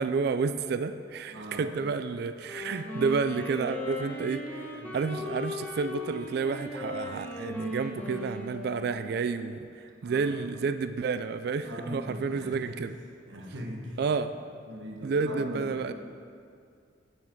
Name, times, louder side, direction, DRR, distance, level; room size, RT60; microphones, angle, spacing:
voice 1, 0.0-13.0 14.0-14.3 15.0-15.9, right 5 dB, 55° right, 11 dB, 0.3 m, -30 dB
voice 2, 1.3-1.7 4.8-5.0 10.0-10.4 11.6-12.9 13.3-14.0 14.7-15.9, equal, 75° right, 0 dB, 1.4 m, -40 dB
Wind instrument woodwind instrument, 2.4-9.2, left 1 dB, 10° left, 1.3 m, -38 dB
9.4 x 8.4 x 4.6 m, 2.3 s
head